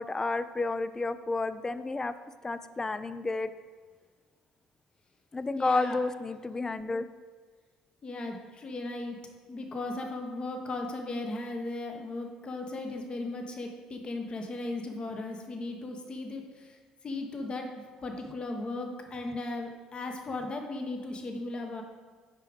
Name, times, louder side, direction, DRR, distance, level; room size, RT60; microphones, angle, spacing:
voice 1, 0.0-2.2 2.4-3.5 5.3-7.1, left 3 dB, 20° left, 13 dB, 0.3 m, -31 dB
voice 2, 5.5-6.0 8.0-9.2 9.5-16.8 17.0-21.8, left 2 dB, 40° left, 3 dB, 1.1 m, -36 dB
6.6 x 4.9 x 5.1 m, 1.5 s
supercardioid pair, 70°, 3 cm